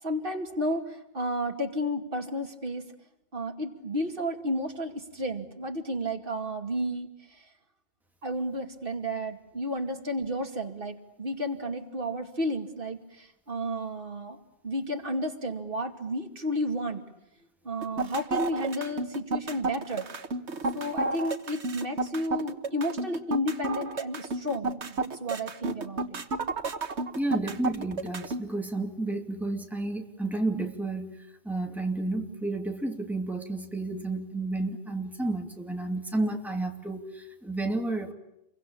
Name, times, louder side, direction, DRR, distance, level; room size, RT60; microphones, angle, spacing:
voice 1, 0.0-2.9 3.3-7.5 8.2-17.0 17.6-20.1 20.7-26.2 27.3-27.5, equal, 50° right, 4 dB, 2.6 m, -32 dB
sound 1, 17.8-28.4, right 3 dB, 70° right, 1.7 m, -31 dB
voice 2, 27.1-38.1, right 2 dB, ahead, 3 dB, 2.5 m, -31 dB
28.5 x 23.5 x 8.6 m, 0.84 s
omnidirectional pair, 1.2 m